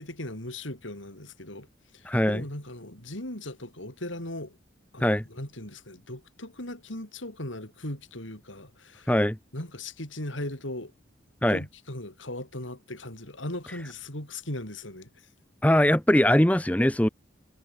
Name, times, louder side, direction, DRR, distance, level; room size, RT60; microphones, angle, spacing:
voice 1, 0.0-1.7 1.9-4.6 4.9-9.1 9.5-10.9 11.5-15.1, left 1 dB, 90° left, 7.4 m, -38 dB
voice 2, 2.1-2.4 5.0-5.2 9.1-9.4 11.4-11.6 15.6-17.1, left 1 dB, 5° left, 0.8 m, -21 dB
head